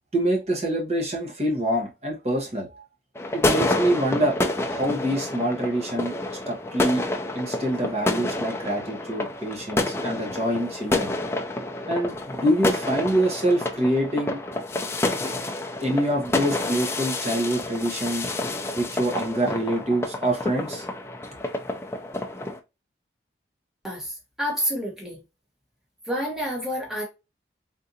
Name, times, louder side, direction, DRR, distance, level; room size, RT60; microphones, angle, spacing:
voice 1, 0.1-2.8 3.3-4.4 4.7-7.0 7.3-11.1 11.9-14.4 15.8-18.3 18.8-20.9, right 1 dB, 35° right, 1.0 m, -25 dB
sound 1, 3.1-22.6, left 2 dB, 15° left, 0.4 m, -29 dB
voice 2, 23.8-25.2 26.1-27.0, equal, 5° right, 1.0 m, -29 dB
3.7 x 2.5 x 2.7 m
head